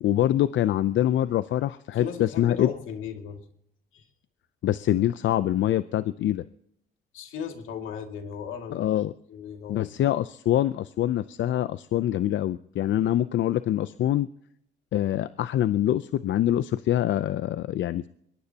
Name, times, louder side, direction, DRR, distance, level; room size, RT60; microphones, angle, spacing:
voice 1, 0.0-2.7 4.6-6.4 8.7-9.1 9.7-14.3 14.9-18.1, left 12 dB, 70° left, 13 dB, 0.6 m, -25 dB
voice 2, 1.9-3.5 3.9-4.1 7.1-8.9 9.3-9.9, left 7 dB, 85° left, 4 dB, 2.4 m, -36 dB
22.5 x 20.0 x 2.9 m, 0.71 s
cardioid pair, 90°, 20 cm